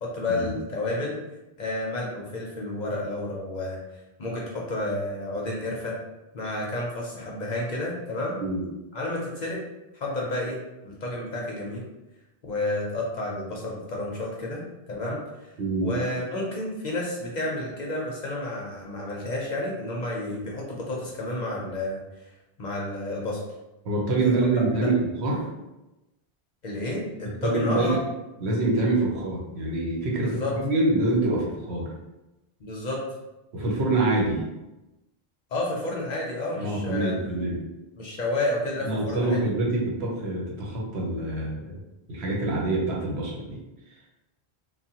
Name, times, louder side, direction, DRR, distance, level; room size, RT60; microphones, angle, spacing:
voice 1, 0.0-1.2 1.6-3.8 4.2-6.0 6.3-8.4 8.9-9.6 9.9-10.6 10.8-11.9 12.4-15.5 15.8-22.3 22.6-23.4 24.8-24.9 26.6-28.0 30.2-30.5 32.6-33.0 35.5-37.3 38.0-39.4, left 2 dB, 50° left, -3 dB, 0.6 m, -31 dB
voice 2, 15.6-15.9 23.8-25.5 27.4-28.0 28.4-31.9 33.5-34.4 36.5-37.6 38.8-41.8 42.1-43.6, right 2 dB, 80° right, -2 dB, 1.1 m, -25 dB
3.3 x 2.2 x 2.8 m, 0.99 s
omnidirectional pair, 1.1 m